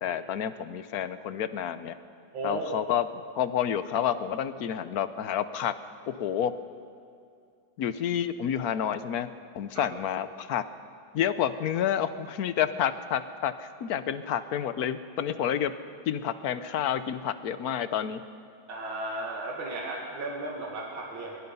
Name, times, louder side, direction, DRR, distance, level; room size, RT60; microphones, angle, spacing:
voice 1, 0.0-2.0 2.4-3.0 3.4-5.7 6.1-6.5 7.8-9.3 9.5-10.6 11.1-15.7 16.1-18.2, left 9 dB, 60° left, 12 dB, 1.0 m, -29 dB
voice 2, 2.3-2.7 9.7-9.9 18.7-21.4, right 2 dB, 70° right, -2 dB, 3.0 m, -35 dB
22.5 x 22.0 x 5.5 m, 2.3 s
omnidirectional pair, 2.2 m